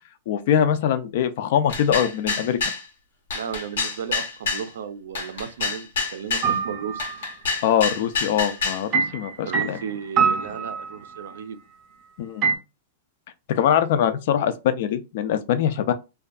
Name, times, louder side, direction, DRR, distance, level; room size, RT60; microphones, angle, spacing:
voice 1, 0.3-2.6 7.6-9.8 12.2-12.4 13.5-15.9, left 9 dB, 50° left, 0.3 m, -22 dB
sound 1, 1.7-2.8 3.3-4.7 5.2-6.5 7.0-8.8, left 4 dB, 90° left, 0.9 m, -27 dB
voice 2, 3.3-7.0 9.4-11.6, right 7 dB, 90° right, 0.4 m, -34 dB
sound 2, 6.4-7.2 8.9-11.3 12.4-12.6, right 6 dB, 25° right, 0.5 m, -24 dB
2.6 x 2.3 x 2.3 m
supercardioid pair, 165°, 0 cm